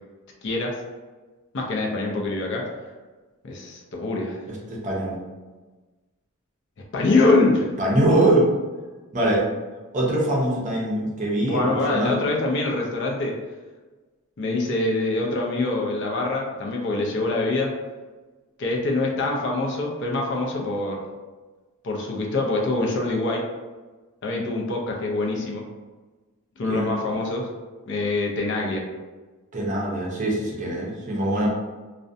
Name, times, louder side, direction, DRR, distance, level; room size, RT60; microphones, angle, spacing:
voice 1, 0.4-0.7 1.5-2.6 3.4-4.4 6.9-7.7 11.4-13.3 14.4-17.7 18.6-21.0 21.8-23.4 24.2-25.6 26.6-27.5 27.9-28.8, left 2 dB, 55° left, -1 dB, 0.5 m, -24 dB
voice 2, 4.5-5.2 7.8-8.5 9.1-9.4 9.9-12.2 26.7-26.9 29.5-31.5, right 1 dB, 35° right, -3 dB, 0.6 m, -23 dB
2.4 x 2.1 x 2.5 m, 1.3 s
head